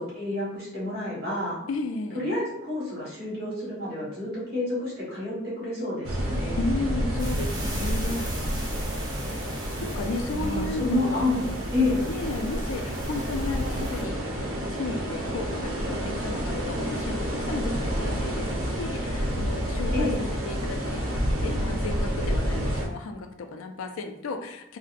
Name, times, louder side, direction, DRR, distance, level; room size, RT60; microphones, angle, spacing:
voice 1, 0.0-1.6 2.1-6.6 10.3-12.1 19.9-20.2, left 2 dB, 50° right, -6 dB, 1.4 m, -29 dB
voice 2, 1.7-2.2 6.6-8.3 9.8-11.3 12.1-14.3 14.6-20.1 20.5-24.8, left 3 dB, 80° left, 6 dB, 0.4 m, -34 dB
sound 1, 6.0-22.9, equal, 90° right, 0.7 m, -29 dB
sound 2, 7.2-14.0, equal, 20° right, 0.5 m, -35 dB
3.9 x 2.1 x 2.5 m, 0.83 s
head